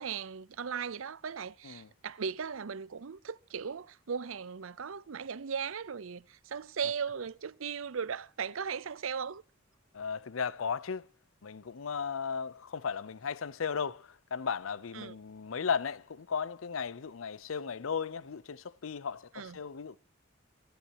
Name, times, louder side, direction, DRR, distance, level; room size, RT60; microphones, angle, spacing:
voice 1, 0.0-9.4 14.9-15.2 19.3-19.6, right 6 dB, 85° right, 0.6 m, -37 dB
voice 2, 9.9-11.0 11.4-20.0, left 6 dB, 80° left, 0.6 m, -36 dB
28.5 x 10.0 x 2.9 m
head